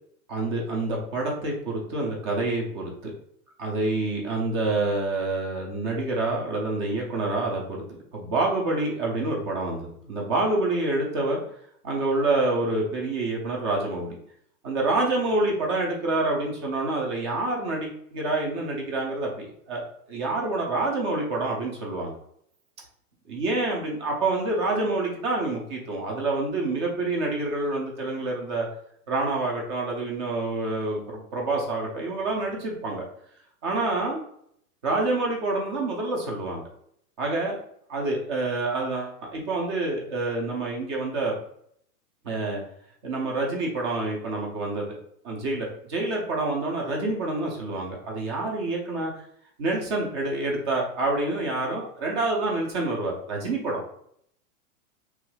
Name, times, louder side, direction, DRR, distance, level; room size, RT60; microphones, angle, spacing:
voice 1, 0.3-3.1 3.6-7.8 8.1-11.4 11.8-14.2 14.6-22.1 23.3-28.7 29.1-33.0 33.6-34.2 34.8-36.6 37.2-37.6 37.9-41.3 42.2-42.6 43.0-45.0 45.2-49.1 49.6-53.8, right 2 dB, 20° right, -1 dB, 0.3 m, -27 dB
3.0 x 2.3 x 3.0 m, 0.68 s
hypercardioid pair, 130°, 45 cm